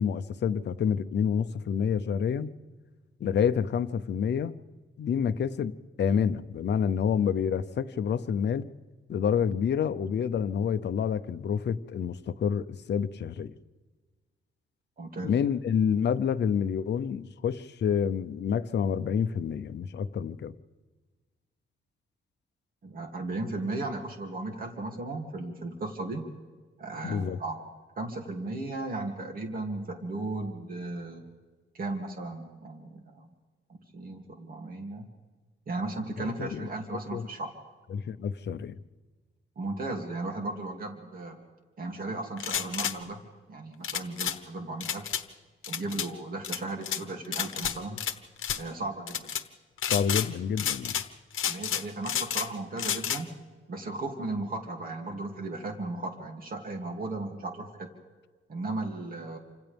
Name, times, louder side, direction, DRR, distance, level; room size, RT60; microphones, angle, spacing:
voice 1, 0.0-2.5 3.2-4.6 5.0-5.7 6.0-8.7 9.1-13.5 15.2-20.5 27.0-27.4 36.2-36.7 37.1-37.3 37.9-38.8 49.9-51.0, left 7 dB, 55° left, 0.8 m, -28 dB
voice 2, 15.0-15.4 22.8-26.3 26.8-27.6 28.0-31.2 31.7-33.3 33.7-35.0 35.7-37.5 39.6-41.4 41.8-43.2 43.5-45.1 45.7-48.0 48.6-49.3 51.5-53.3 53.7-57.9 58.5-59.4, right 2 dB, 45° right, 2.6 m, -36 dB
sound 1, 42.4-42.9 43.8-44.4 44.8-45.2 45.6-46.1 46.4-47.0 47.3-48.1 48.4-48.6 49.1-49.4 49.8-50.3 50.6-51.1 51.3-52.5 52.8-53.2, left 9 dB, 70° left, 1.1 m, -30 dB
29.0 x 26.0 x 3.5 m
wide cardioid pair, 140°, 21 cm